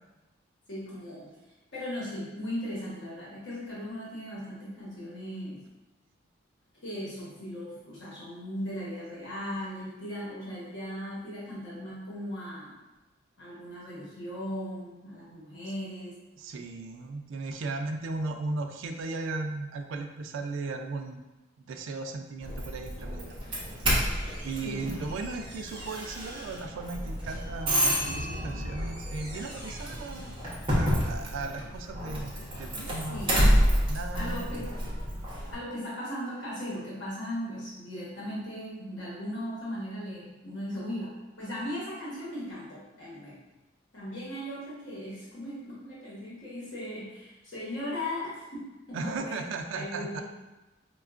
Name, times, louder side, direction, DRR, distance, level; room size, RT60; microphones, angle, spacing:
voice 1, 0.7-1.3 1.7-5.6 6.8-12.8 13.4-16.2 24.6-25.0 33.1-33.4 34.1-34.7 35.5-43.4 43.9-49.4 49.7-50.2, equal, 65° left, -8 dB, 1.0 m, -38 dB
voice 2, 16.4-21.2 21.7-23.4 24.4-30.4 30.7-33.3 33.9-34.5 48.9-50.2, right 3 dB, 75° right, 5 dB, 0.3 m, -36 dB
Doorbell, 22.4-35.5, equal, 25° right, 0.7 m, -29 dB
4.3 x 2.2 x 2.4 m, 1.1 s
head